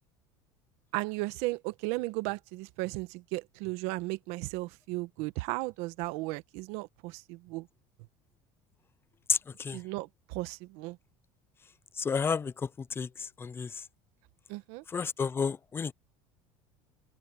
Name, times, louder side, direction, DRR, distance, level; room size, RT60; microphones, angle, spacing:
voice 1, 0.9-7.7 9.7-11.0 14.5-14.8, right 21 dB, 70° right, 1.3 m, -35 dB
voice 2, 9.3-9.8 12.0-12.7 13.0-13.7 14.9-15.9, left 6 dB, 20° left, 0.6 m, -31 dB
open air
supercardioid pair, 115°, 11 cm